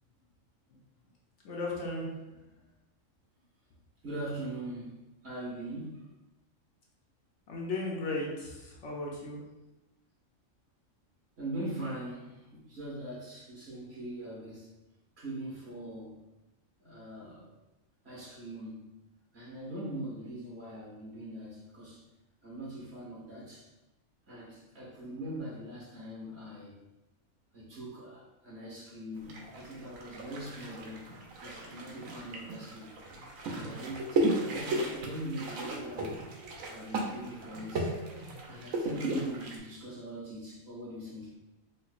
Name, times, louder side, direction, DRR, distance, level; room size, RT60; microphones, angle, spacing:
voice 1, 1.4-2.1 7.5-9.4, left 2 dB, 65° left, -3 dB, 1.0 m, -35 dB
voice 2, 4.0-6.1 11.4-14.7 15.2-16.2 16.8-17.5 18.0-18.9 19.3-22.0 22.4-23.7 24.3-26.8 27.5-32.9 33.4-36.2 36.7-37.9 38.5-41.3, right 1 dB, 55° right, -6 dB, 1.5 m, -42 dB
sound 1, 29.3-39.6, right 2 dB, 85° right, 1.0 m, -35 dB
4.2 x 2.5 x 2.4 m, 1.0 s
omnidirectional pair, 1.4 m